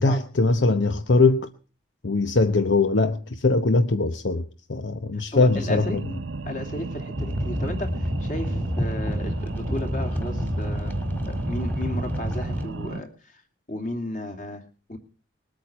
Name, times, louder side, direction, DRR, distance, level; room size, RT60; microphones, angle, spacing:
voice 1, 0.0-1.5 2.0-6.0, left 3 dB, 65° left, 0.9 m, -21 dB
voice 2, 5.1-6.0 6.4-10.9 11.3-13.4 13.7-14.6 14.9-15.0, left 1 dB, 40° left, 2.8 m, -34 dB
sound 1, 5.5-13.0, right 3 dB, 75° right, 0.8 m, -35 dB
sound 2, 7.2-12.7, equal, 10° left, 1.9 m, -28 dB
21.0 x 8.9 x 6.1 m
head